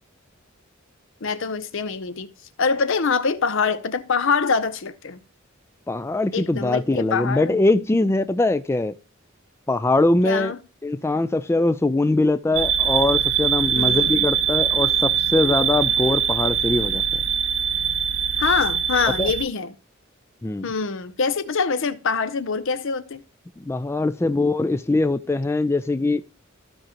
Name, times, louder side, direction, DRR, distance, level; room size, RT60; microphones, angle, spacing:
voice 1, 1.2-2.3 2.6-5.2 6.3-7.6 10.2-10.6 13.8-14.3 18.4-19.7 20.6-23.2, left 5 dB, 70° left, 0.7 m, -24 dB
voice 2, 5.9-8.9 9.7-10.5 10.8-17.0 19.2-19.3 20.4-20.7 23.6-26.2, left 2 dB, 15° left, 0.3 m, -22 dB
sound 1, 12.5-19.4, right 8 dB, 65° right, 0.6 m, -22 dB
15.0 x 5.0 x 2.9 m
head